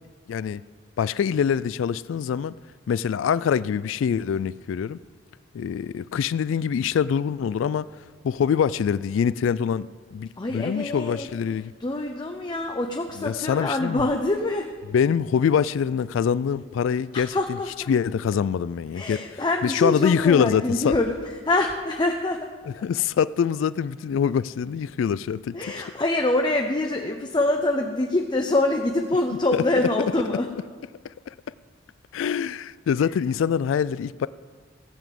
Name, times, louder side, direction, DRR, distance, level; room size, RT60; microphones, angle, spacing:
voice 1, 0.3-0.6 1.0-2.5 2.9-5.0 5.5-7.9 8.2-9.9 10.1-11.7 13.2-14.1 14.9-17.6 17.9-21.0 22.6-25.7 29.5-29.6 31.3-31.4 32.1-34.3, left 7 dB, 80° left, 0.3 m, -24 dB
voice 2, 10.4-11.3 11.8-14.7 17.1-17.9 18.9-21.2 21.4-22.5 25.5-30.5, left 2 dB, 25° left, 0.7 m, -25 dB
15.5 x 7.2 x 7.5 m
head